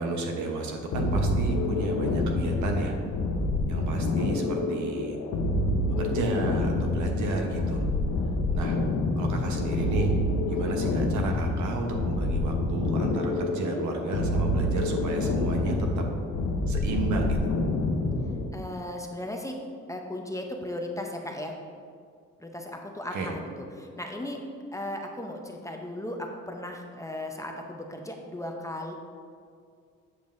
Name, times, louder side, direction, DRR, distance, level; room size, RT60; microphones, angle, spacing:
voice 1, 0.0-3.0 3.7-5.2 5.9-7.9 8.5-8.8 9.2-10.2 10.5-16.0 16.7-17.4 23.1-23.3, right 2 dB, 75° right, 2 dB, 1.0 m, -32 dB
sound 1, 0.9-18.5, left 2 dB, 65° left, 0.8 m, -27 dB
voice 2, 18.5-19.5 19.9-21.6 22.4-23.5 23.7-24.4 24.7-28.9, left 1 dB, 10° left, 2 dB, 0.6 m, -36 dB
8.0 x 5.2 x 2.6 m, 2.2 s
cardioid pair, 90°, 30 cm